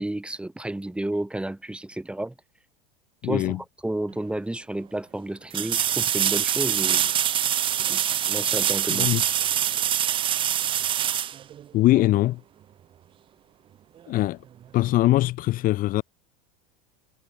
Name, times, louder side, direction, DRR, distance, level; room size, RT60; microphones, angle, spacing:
voice 1, 0.0-2.3 3.2-3.6 3.8-7.1 7.9-8.0 8.3-9.1, right 1 dB, 5° right, 2.5 m, -31 dB
voice 2, 3.2-3.6 8.9-9.2 11.7-12.4 14.1-14.4 14.7-16.0, left 16 dB, 45° left, 1.0 m, -22 dB
sound 1, 4.1-4.2 5.5-12.1 15.0-15.1, right 10 dB, 25° right, 0.5 m, -24 dB
supercardioid pair, 110°, 20 cm